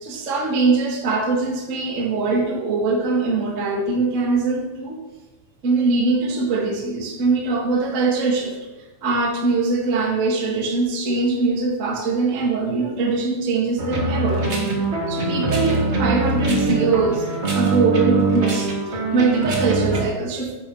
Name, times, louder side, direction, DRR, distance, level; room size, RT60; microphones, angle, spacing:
voice 1, 0.0-5.0 5.6-8.6 9.0-14.4 15.1-20.6, right 3 dB, 35° right, -1 dB, 1.4 m, -22 dB
sound 1, 13.8-20.0, right 3 dB, 65° right, 0.6 m, -23 dB
10.0 x 7.4 x 5.6 m, 1.1 s
omnidirectional pair, 4.2 m